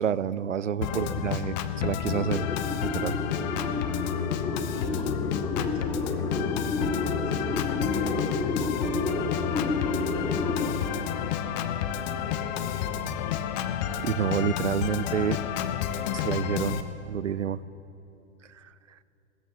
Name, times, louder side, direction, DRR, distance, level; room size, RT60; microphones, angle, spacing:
voice 1, 0.0-2.5 2.8-3.2 14.0-15.4 16.1-17.6 18.6-18.7, right 8 dB, 85° right, 19 dB, 0.5 m, -29 dB
Organ, 0.8-16.8, left 9 dB, 40° left, 0.8 m, -30 dB
sound 1, 2.1-10.7, left 2 dB, 10° left, 0.6 m, -31 dB
voice 2, 4.3-5.2 5.6-8.4 8.7-9.7 10.1-10.9 12.2-13.0, left 2 dB, 80° left, -2 dB, 3.9 m, -42 dB
17.0 x 14.0 x 4.0 m, 2.8 s
figure-of-eight pair, 105°, 36 cm